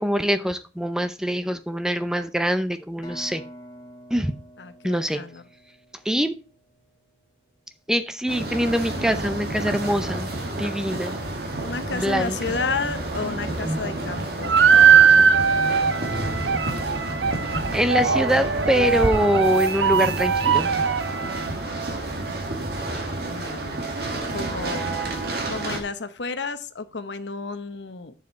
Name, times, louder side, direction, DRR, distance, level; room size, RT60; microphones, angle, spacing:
voice 1, 0.0-3.4 4.1-4.3 4.8-5.2 6.1-6.4 7.9-11.2 11.9-12.4 17.7-20.7, equal, 5° right, 10 dB, 0.5 m, -24 dB
sound 1, 3.0-6.8, equal, 25° left, 2.0 m, -46 dB
voice 2, 4.6-5.4 11.6-14.6 23.2-23.9 24.3-25.1 25.5-28.1, left 4 dB, 80° left, 10 dB, 0.9 m, -32 dB
sound 2, 8.3-25.8, right 2 dB, 60° right, 1.9 m, -29 dB
sound 3, 14.4-21.5, right 7 dB, 80° right, 0.6 m, -20 dB
7.4 x 7.0 x 4.1 m, 0.34 s
head